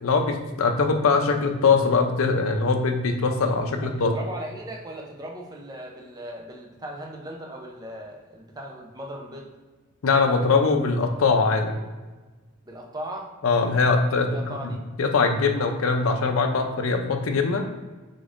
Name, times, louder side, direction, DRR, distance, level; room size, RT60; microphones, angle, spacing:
voice 1, 0.0-4.1 10.0-11.8 13.4-14.3 15.0-17.6, left 4 dB, 75° left, 5 dB, 0.5 m, -22 dB
voice 2, 3.8-9.5 12.6-13.3 14.2-14.8, right 1 dB, 20° right, 0 dB, 0.6 m, -38 dB
5.2 x 3.7 x 2.5 m, 1.3 s
head